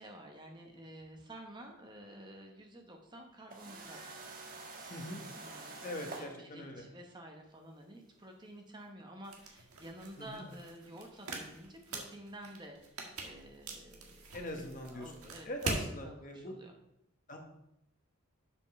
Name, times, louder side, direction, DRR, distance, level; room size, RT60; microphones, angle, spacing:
voice 1, 0.0-4.1 5.3-12.8 13.2-14.2 14.8-16.7, right 1 dB, 20° right, 2 dB, 1.0 m, -51 dB
sound 1, 3.5-6.3 8.1-8.2 10.2-10.3, right 3 dB, 40° right, 1.2 m, -47 dB
voice 2, 4.9-5.2 5.8-6.9 10.2-10.5 14.3-15.1 15.4-16.5 17.3-17.4, left 1 dB, 35° left, 3 dB, 1.2 m, -42 dB
sound 2, 9.2-15.9, right 2 dB, 90° right, 1.5 m, -43 dB
7.1 x 5.2 x 5.9 m, 0.80 s
head